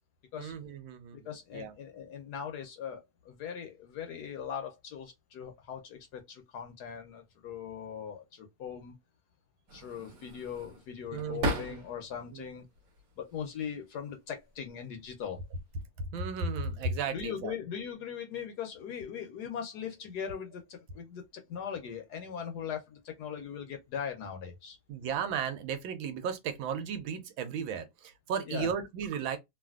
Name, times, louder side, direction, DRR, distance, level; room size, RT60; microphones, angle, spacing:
voice 1, 0.4-1.7 11.1-11.8 12.3-12.5 16.1-17.6 24.9-29.4, right 6 dB, 80° right, 1.5 m, -35 dB
voice 2, 1.1-9.0 9.7-12.6 13.2-15.4 17.1-24.8 28.5-28.7, left 8 dB, 70° left, 1.0 m, -40 dB
sound 1, 9.7-12.2 12.6-13.4 14.4-14.7 15.0-15.8, equal, 55° right, 1.2 m, -38 dB
3.2 x 2.5 x 2.3 m
omnidirectional pair, 2.1 m